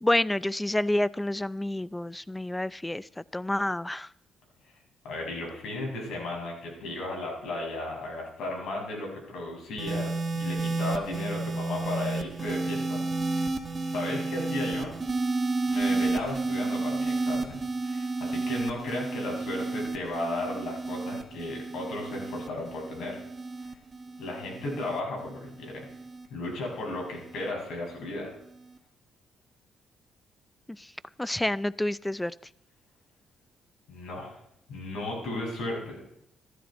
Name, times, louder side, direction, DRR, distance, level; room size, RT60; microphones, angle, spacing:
voice 1, 0.0-3.0 3.3-4.1 31.2-32.3, left 1 dB, 10° left, 20 dB, 0.4 m, -28 dB
voice 2, 5.0-13.0 13.3-15.0 15.7-23.2 23.6-23.7 24.2-25.8 26.3-28.4 33.9-34.4 34.7-36.2, left 2 dB, 75° left, 0 dB, 6.3 m, -35 dB
sound 1, 9.8-26.3 27.2-27.5, right 3 dB, 35° right, 1.5 m, -31 dB
15.0 x 13.0 x 4.3 m, 0.76 s
cardioid pair, 90°, 0 cm